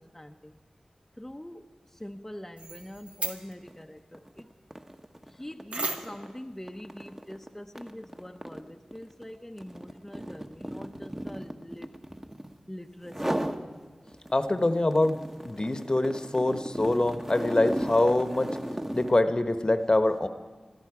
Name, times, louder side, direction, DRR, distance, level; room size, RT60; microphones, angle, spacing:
voice 1, 1.2-1.6 2.0-3.9 5.4-10.4 10.7-11.9 12.7-13.5, left 1 dB, 15° left, 3 dB, 0.7 m, -43 dB
sound 1, 2.6-3.6 5.7-6.3, right 2 dB, 70° right, 1.1 m, -35 dB
sound 2, 3.6-3.8 4.1-12.6 13.0-13.6 14.1-19.2, right 1 dB, 20° right, 1.0 m, -36 dB
voice 2, 14.3-18.5 18.9-20.3, left 2 dB, 40° left, 9 dB, 1.0 m, -25 dB
21.5 x 13.5 x 4.8 m, 1.4 s
cardioid pair, 40°, 2 cm